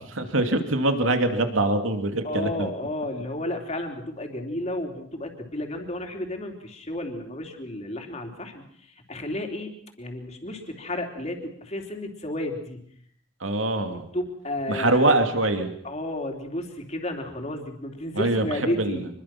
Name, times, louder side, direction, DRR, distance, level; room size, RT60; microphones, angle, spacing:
voice 1, 0.0-2.7 13.4-14.1 14.7-15.7 18.1-19.1, right 2 dB, 90° right, 6 dB, 2.6 m, -24 dB
voice 2, 2.2-12.8 13.9-15.1 15.8-19.0, left 1 dB, 35° left, 3 dB, 3.4 m, -32 dB
26.0 x 22.0 x 6.0 m, 0.65 s
head